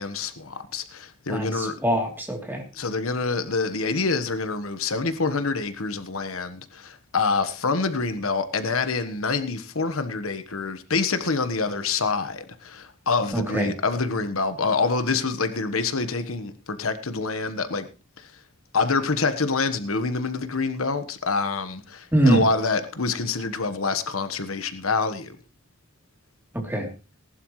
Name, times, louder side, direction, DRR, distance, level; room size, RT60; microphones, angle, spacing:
voice 1, 0.0-1.7 2.7-17.9 18.2-18.3 18.7-25.4, left 4 dB, 85° left, 1.3 m, -26 dB
voice 2, 1.3-2.6 13.3-13.7 22.1-22.4 26.5-26.9, right 1 dB, 10° right, 3.1 m, -23 dB
19.0 x 11.5 x 3.2 m
head